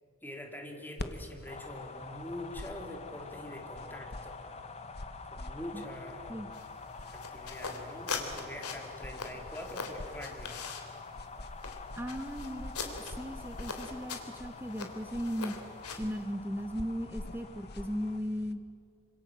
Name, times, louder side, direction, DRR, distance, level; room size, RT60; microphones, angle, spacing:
voice 1, 0.2-4.5 5.2-6.4 7.1-10.6, left 1 dB, 10° left, 2 dB, 3.4 m, -44 dB
sound 1, 1.0-18.5, left 1 dB, 45° left, 1.3 m, -48 dB
sound 2, 1.5-18.2, left 4 dB, 30° left, 1.5 m, -47 dB
sound 3, 6.5-16.2, left 5 dB, 75° left, 3.2 m, -42 dB
voice 2, 12.0-15.6 16.0-18.6, equal, 10° right, 8 dB, 0.9 m, -37 dB
27.0 x 26.0 x 7.5 m, 2.3 s
head